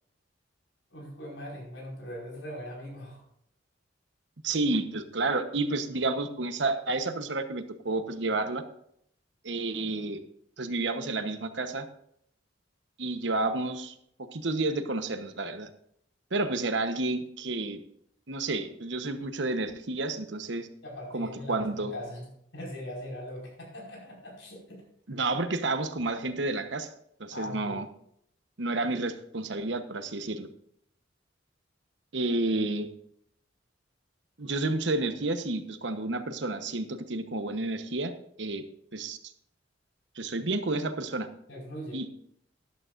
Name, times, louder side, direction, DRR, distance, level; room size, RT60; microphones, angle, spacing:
voice 1, 0.9-3.2 20.8-24.8 27.3-27.8 41.5-42.0, equal, 80° left, -2 dB, 5.2 m, -41 dB
voice 2, 4.4-8.6 9.4-10.2 10.6-11.9 13.0-13.9 14.3-15.7 16.3-17.8 18.3-20.7 21.1-21.9 25.1-26.9 27.2-27.8 28.6-30.5 32.1-32.9 34.4-38.1 38.4-38.6 38.9-39.2 40.1-41.3 41.9-42.1, right 2 dB, 65° right, 9 dB, 1.0 m, -30 dB
13.5 x 11.5 x 2.6 m, 0.71 s
head